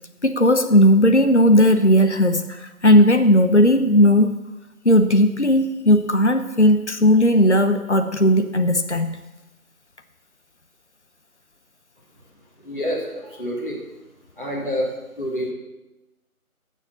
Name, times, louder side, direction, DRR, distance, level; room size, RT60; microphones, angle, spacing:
voice 1, 0.2-4.4 4.8-9.2, equal, 50° left, 8 dB, 0.9 m, -16 dB
voice 2, 12.6-13.8 14.4-14.9 15.2-15.5, equal, 35° left, -5 dB, 2.9 m, -27 dB
12.5 x 7.3 x 7.1 m, 1.0 s
figure-of-eight pair, 180°, 43 cm